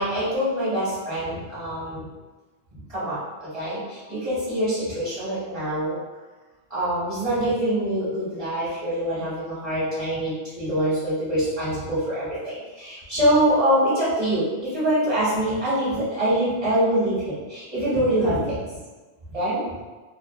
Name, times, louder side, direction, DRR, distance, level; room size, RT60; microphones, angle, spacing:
voice 1, 0.0-2.1 2.9-6.0 6.7-18.5 19.3-19.6, right 1 dB, 35° right, -13 dB, 1.2 m, -24 dB
2.6 x 2.4 x 2.3 m, 1.3 s
omnidirectional pair, 1.1 m